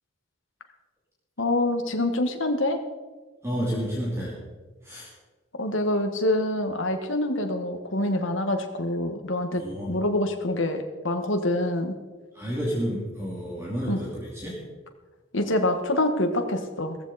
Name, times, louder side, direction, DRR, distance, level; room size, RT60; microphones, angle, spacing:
voice 1, 1.4-2.8 5.6-12.0 13.9-14.0 15.3-17.0, left 1 dB, 65° left, 5 dB, 1.8 m, -26 dB
voice 2, 3.4-4.4 4.8-5.1 9.5-10.0 12.3-14.6, equal, 15° right, -5 dB, 2.8 m, -30 dB
16.5 x 14.5 x 4.3 m, 1.3 s
head